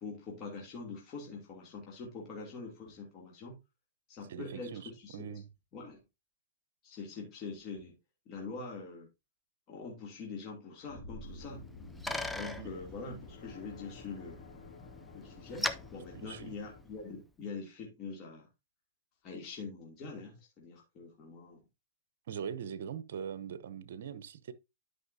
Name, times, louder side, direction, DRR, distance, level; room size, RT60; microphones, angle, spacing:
voice 1, 0.0-3.6 4.1-5.2 5.7-6.0 6.8-7.9 8.3-9.1 9.7-11.6 12.3-14.4 15.1-18.4 19.2-21.6, left 4 dB, 30° left, 2.7 m, -44 dB
voice 2, 4.3-5.5 12.6-12.7 16.1-16.5 22.3-24.5, right 7 dB, 65° right, 0.8 m, -42 dB
sound 1, 10.8-16.8, left 3 dB, 65° left, 2.4 m, -51 dB
Bicycle, 11.4-17.1, left 1 dB, ahead, 0.6 m, -42 dB
11.5 x 5.5 x 2.7 m
hypercardioid pair, 140°, 0 cm